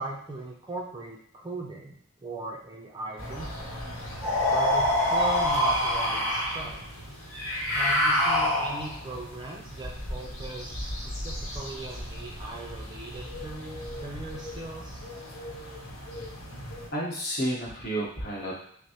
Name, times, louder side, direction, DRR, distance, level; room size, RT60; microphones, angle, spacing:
voice 1, 0.0-3.5 4.5-6.8 7.7-15.0, right 2 dB, 20° right, -1 dB, 0.4 m, -37 dB
sound 1, 3.2-16.9, equal, 80° left, 0.9 m, -39 dB
sound 2, 4.2-6.7 7.3-9.0, left 1 dB, 15° left, 1.3 m, -25 dB
voice 2, 16.9-18.6, right 1 dB, 45° left, -4 dB, 1.1 m, -31 dB
5.9 x 2.0 x 2.9 m, 0.66 s
head